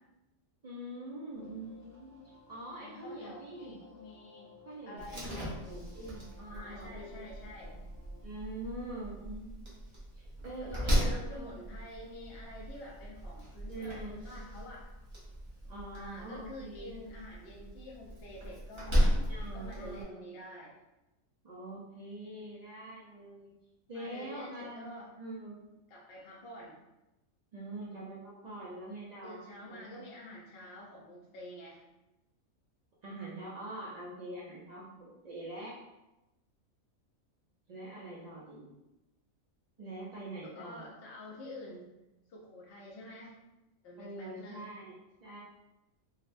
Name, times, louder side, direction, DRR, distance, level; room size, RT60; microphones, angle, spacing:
voice 1, 0.6-2.1 2.5-3.8 4.6-7.4 8.2-9.9 10.1-11.6 13.7-14.3 15.6-16.9 19.3-20.2 21.4-23.5 23.9-24.9 25.2-25.6 27.5-29.4 29.7-30.0 33.0-35.8 37.7-38.7 39.8-40.9 44.0-45.0 45.2-45.4, right 1 dB, 90° right, -6 dB, 0.3 m, -44 dB
sound 1, 1.3-8.3, left 3 dB, 20° left, 0.5 m, -58 dB
voice 2, 2.8-4.5 4.9-5.6 6.5-7.7 10.6-14.9 15.9-19.0 19.5-20.8 23.9-25.1 25.9-26.8 29.2-31.8 40.4-41.9 42.3-43.4 43.8-44.7, left 1 dB, 60° left, -4 dB, 0.7 m, -48 dB
Slam, 5.0-20.0, equal, 30° right, 0.6 m, -36 dB
3.8 x 2.1 x 2.5 m, 0.97 s
omnidirectional pair, 1.4 m